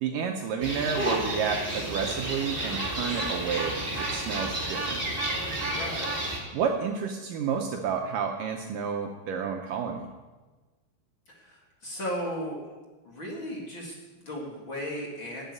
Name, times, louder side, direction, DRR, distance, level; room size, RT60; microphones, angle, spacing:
voice 1, 0.0-5.0 6.5-10.1, right 6 dB, 75° right, 3 dB, 2.1 m, -30 dB
sound 1, 0.6-6.4, right 1 dB, 20° right, 1.6 m, -31 dB
voice 2, 5.6-6.2 11.3-12.6 13.0-15.5, equal, 35° left, -3 dB, 2.4 m, -36 dB
12.5 x 8.1 x 9.4 m, 1.3 s
omnidirectional pair, 4.6 m